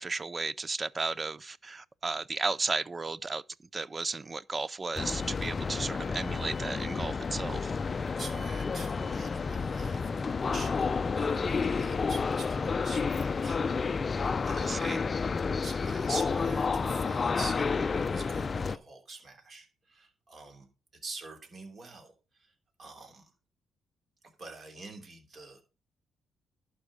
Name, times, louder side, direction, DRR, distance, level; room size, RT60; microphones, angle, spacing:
voice 1, 0.0-3.4 3.7-7.7 14.6-15.0, right 3 dB, 30° right, 0.4 m, -34 dB
sound 1, 5.0-18.8, left 5 dB, 35° left, 0.5 m, -30 dB
voice 2, 8.1-15.2 15.6-20.7 21.0-22.5 22.8-23.3 24.4-25.6, right 3 dB, 45° right, 3.2 m, -46 dB
11.5 x 4.8 x 6.1 m
cardioid pair, 90°, 0 cm